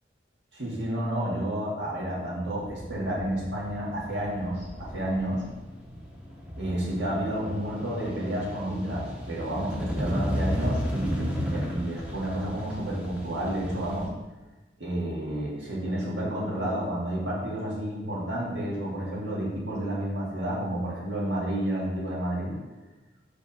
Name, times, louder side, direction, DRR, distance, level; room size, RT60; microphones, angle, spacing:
voice 1, 0.5-5.4 6.6-14.1 14.8-22.5, right 1 dB, 75° right, -6 dB, 1.9 m, -30 dB
sound 1, 2.6-14.1, equal, 5° right, 0.8 m, -35 dB
5.1 x 3.6 x 5.4 m, 1.2 s
head